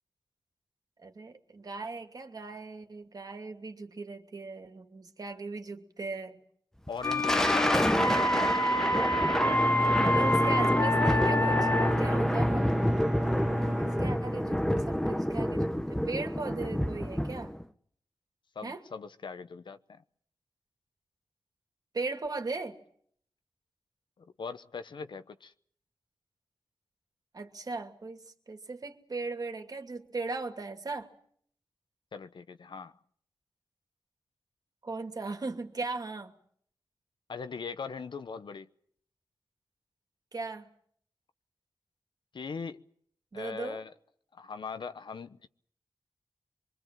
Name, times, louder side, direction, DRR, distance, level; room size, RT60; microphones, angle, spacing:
voice 1, 1.0-6.4 7.2-7.4 9.9-11.7 12.0-12.7 13.6-17.5 18.6-18.8 21.9-22.8 27.3-31.1 34.8-36.3 40.3-40.7 43.3-43.8, right 3 dB, 50° right, 2.6 m, -38 dB
voice 2, 6.9-7.7 18.5-20.0 24.2-25.5 32.1-32.9 37.3-38.7 42.3-42.9 43.3-43.9 44.3-45.5, left 5 dB, 80° left, 1.0 m, -40 dB
Thunder, 6.9-17.6, equal, 5° left, 1.0 m, -29 dB
sound 1, 7.0-12.1, left 1 dB, 30° left, 1.0 m, -27 dB
Bowed string instrument, 9.4-14.9, equal, 10° right, 1.7 m, -31 dB
25.5 x 23.0 x 7.6 m
wide cardioid pair, 105°, 8 cm